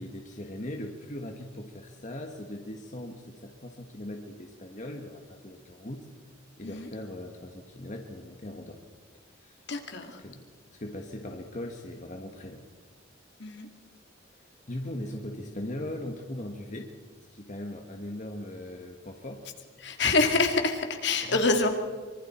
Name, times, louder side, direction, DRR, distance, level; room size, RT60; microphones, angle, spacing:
voice 1, 0.0-6.1 6.6-8.8 9.4-9.6 10.2-10.5 10.7-12.6 14.3-16.9 17.3-19.5 21.2-21.4, left 1 dB, 40° left, 2 dB, 1.5 m, -39 dB
voice 2, 9.7-10.2 13.4-13.7 19.8-21.7, left 3 dB, 65° left, 4 dB, 2.3 m, -26 dB
25.0 x 24.0 x 4.4 m, 1.5 s
head